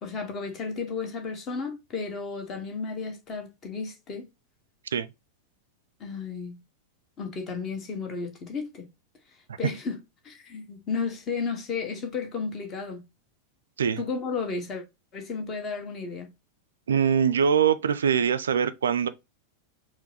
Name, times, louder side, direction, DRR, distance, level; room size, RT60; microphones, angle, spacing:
voice 1, 0.0-4.3 6.0-6.6 7.2-8.9 9.6-10.0 10.2-13.0 14.0-14.8 15.1-16.3, left 4 dB, 25° left, 1.3 m, -33 dB
voice 2, 16.9-19.1, right 7 dB, 65° right, 0.4 m, -23 dB
4.5 x 2.1 x 4.0 m
figure-of-eight pair, 90°, 0 cm